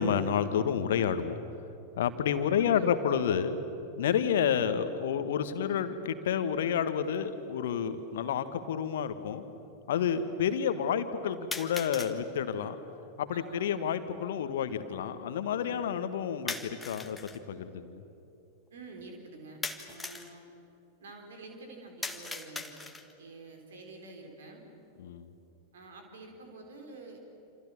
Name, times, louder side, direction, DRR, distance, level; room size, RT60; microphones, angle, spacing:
voice 1, 0.0-1.3 2.0-3.6 4.0-9.4 9.9-12.8 13.2-18.0 25.0-25.3, left 8 dB, 60° left, 10 dB, 1.6 m, -30 dB
voice 2, 2.4-2.9 9.9-10.3 13.3-13.8 15.6-16.0 18.7-19.6 19.9-20.4 21.0-22.7 23.2-24.6 25.7-27.2, right 3 dB, 60° right, 3 dB, 4.4 m, -48 dB
sound 1, 7.1-7.2 8.2-8.3 11.5-12.2 16.5-17.4 19.6-20.3 22.0-23.2, left 3 dB, 10° left, 1.7 m, -39 dB
28.0 x 28.0 x 7.3 m, 3.0 s
figure-of-eight pair, 90°, 0 cm